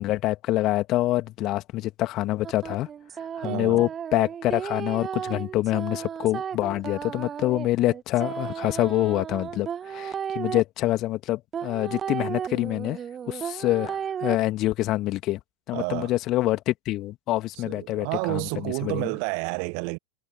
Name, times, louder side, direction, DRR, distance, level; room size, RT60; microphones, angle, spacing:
voice 1, 0.0-2.9 3.4-13.0 13.3-15.4 15.7-19.1, left 16 dB, 35° left, 2.2 m, -26 dB
sound 1, 2.4-10.6 11.5-14.3, right 8 dB, 25° right, 1.1 m, -34 dB
voice 2, 3.4-3.8 15.7-16.1 17.6-20.0, right 40 dB or more, 45° right, 1.0 m, -30 dB
figure-of-eight pair, 90°, 0 cm